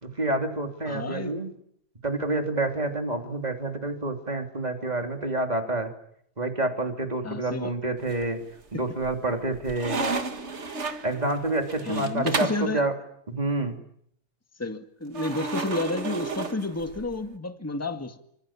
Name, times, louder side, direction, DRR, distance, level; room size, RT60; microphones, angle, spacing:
voice 1, 0.0-1.5 2.0-5.9 6.4-8.4 8.7-10.0 11.0-12.9 13.3-13.8, right 2 dB, 20° right, 3.3 m, -28 dB
voice 2, 0.9-1.4 7.2-7.7 11.8-12.8 14.6-18.2, left 2 dB, 10° left, 1.8 m, -31 dB
sound 1, 8.0-8.6 9.0-12.7 15.1-17.2, right 3 dB, 40° right, 1.9 m, -33 dB
29.0 x 25.5 x 7.4 m
omnidirectional pair, 1.9 m